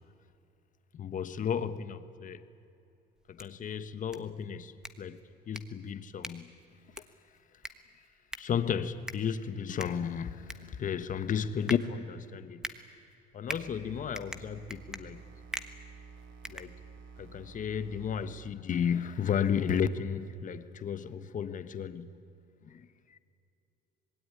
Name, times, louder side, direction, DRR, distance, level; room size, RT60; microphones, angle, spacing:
voice 1, 1.0-2.4 3.3-4.7 5.0-5.2 5.5-6.5 8.4-12.6 13.3-15.2 16.5-16.7 17.2-22.1 22.7-22.9 23.1-23.2, left 7 dB, 40° left, 12 dB, 1.3 m, -33 dB
sound 1, 3.2-17.3, equal, 5° right, 1.4 m, -46 dB
sound 2, 13.5-18.5, right 5 dB, 80° right, 3.0 m, -51 dB
26.0 x 20.0 x 9.7 m, 2.6 s
cardioid pair, 120°, 20 cm